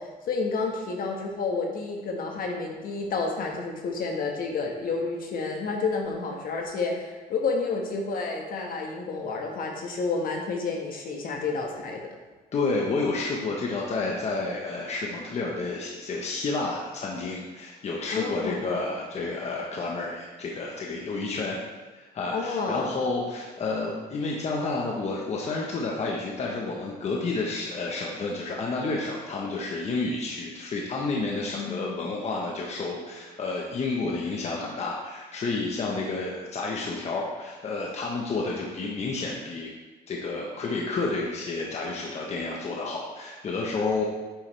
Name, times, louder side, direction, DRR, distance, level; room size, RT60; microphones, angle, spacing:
voice 1, 0.0-12.0 18.1-18.7 22.3-23.0 31.5-32.2, left 4 dB, 60° left, 1 dB, 1.7 m, -30 dB
voice 2, 12.5-21.6 21.9-39.7 40.1-44.0, left 3 dB, 40° left, -2 dB, 1.3 m, -30 dB
9.7 x 7.2 x 3.4 m, 1.2 s
cardioid pair, 110°, 17 cm